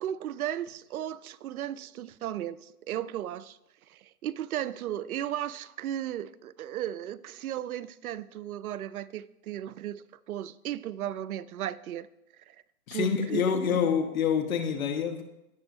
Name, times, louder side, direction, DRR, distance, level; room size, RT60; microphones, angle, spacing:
voice 1, 0.0-3.6 3.9-12.1 12.5-12.6 12.9-13.9, right 11 dB, 70° right, 0.5 m, -35 dB
voice 2, 12.9-15.2, left 7 dB, 65° left, 1.5 m, -27 dB
17.0 x 6.2 x 2.7 m
hypercardioid pair, 160°, 45 cm